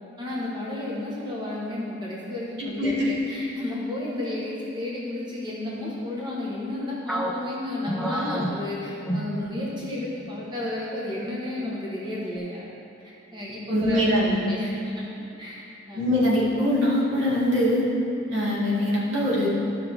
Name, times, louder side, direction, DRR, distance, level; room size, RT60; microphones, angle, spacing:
voice 1, 0.2-12.7 13.0-15.1 15.4-16.0, left 1 dB, 25° right, -6 dB, 1.2 m, -32 dB
voice 2, 2.6-3.1 13.7-14.4 15.9-17.8 18.3-19.5, left 1 dB, 80° right, -6 dB, 2.1 m, -23 dB
sound 1, 7.1-9.9 10.2-10.5 11.1-11.6, right 1 dB, ahead, 0.6 m, -31 dB
13.0 x 5.8 x 3.5 m, 2.7 s
head